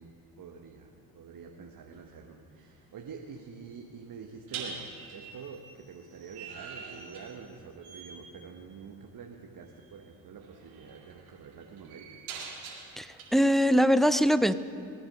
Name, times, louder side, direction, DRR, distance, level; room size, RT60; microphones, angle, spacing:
voice 1, 0.0-12.2, right 5 dB, 50° right, 2 dB, 1.3 m, -47 dB
sound 1, 1.9-2.1 4.5-7.6 7.8-8.3 9.7-9.9 10.4-13.2, right 5 dB, 80° right, 2.3 m, -44 dB
voice 2, 13.0-14.5, equal, ahead, 13 dB, 0.5 m, -23 dB
19.5 x 10.5 x 5.4 m, 2.4 s
hypercardioid pair, 50°, 44 cm